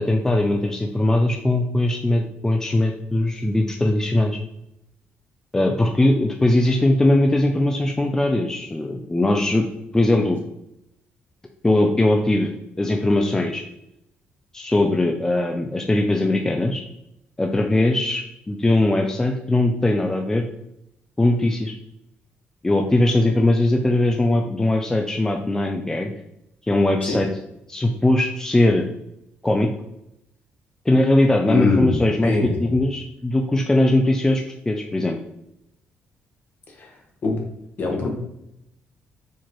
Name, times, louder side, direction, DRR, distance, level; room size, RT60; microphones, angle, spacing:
voice 1, 0.0-4.4 5.5-9.7 9.9-10.4 11.6-12.5 12.8-13.6 14.5-16.8 17.4-20.4 21.2-21.7 22.6-26.1 26.6-27.3 27.7-28.8 29.4-29.7 30.9-35.2, left 1 dB, 15° left, 3 dB, 0.3 m, -20 dB
voice 2, 31.5-31.9 32.2-32.7 36.7-36.9 37.2-37.4 37.8-38.1, left 3 dB, 50° left, 1 dB, 1.0 m, -23 dB
4.4 x 2.4 x 3.0 m, 0.81 s
cardioid pair, 85°, 4 cm